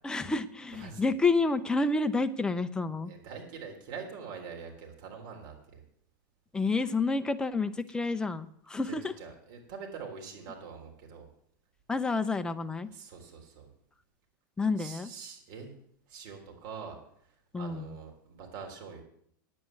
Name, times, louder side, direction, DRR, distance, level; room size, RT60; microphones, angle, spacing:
voice 1, 0.0-3.1 6.5-9.1 11.9-12.9 14.6-15.1 17.5-18.0, left 3 dB, 5° left, 10 dB, 0.6 m, -29 dB
voice 2, 0.7-1.1 3.1-5.8 8.9-11.3 12.9-13.7 14.8-15.7 16.1-17.0 17.2-19.0, right 6 dB, 50° right, 2 dB, 3.6 m, -44 dB
9.3 x 8.6 x 7.6 m, 0.67 s
supercardioid pair, 145°, 11 cm